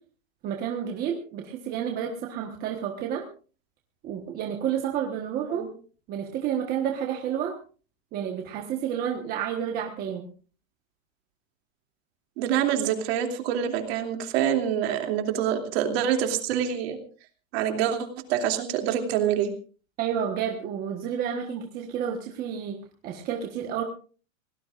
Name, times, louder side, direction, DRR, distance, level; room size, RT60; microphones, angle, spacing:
voice 1, 0.4-3.2 4.0-5.7 6.1-7.5 8.1-10.3 20.0-22.8 23.0-23.8, right 8 dB, 25° right, 2 dB, 1.3 m, -30 dB
voice 2, 12.4-17.0 17.5-19.5, right 9 dB, 50° right, 4 dB, 2.9 m, -26 dB
27.0 x 18.0 x 2.5 m, 0.39 s
supercardioid pair, 175°, 39 cm